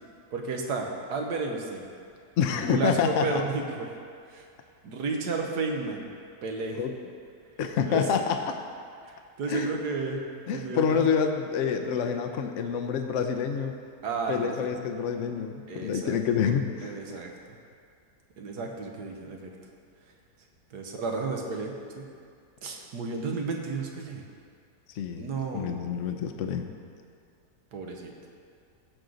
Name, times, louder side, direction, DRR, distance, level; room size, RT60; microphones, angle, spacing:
voice 1, 0.3-1.9 2.7-3.9 4.3-4.5 4.8-6.1 6.4-6.8 7.9-8.0 9.0-10.3 10.5-11.1 14.0-14.7 15.7-16.2 16.8-17.6 18.4-19.5 20.7-22.1 22.6-24.2 25.2-25.9 27.7-28.1, right 4 dB, 80° right, 2 dB, 1.6 m, -32 dB
voice 2, 2.4-3.3 6.8-6.9 7.6-8.6 9.5-9.7 10.5-13.8 14.3-17.2 24.9-26.7, left 7 dB, 65° left, 5 dB, 0.8 m, -27 dB
15.5 x 6.4 x 3.9 m, 2.3 s
omnidirectional pair, 1.7 m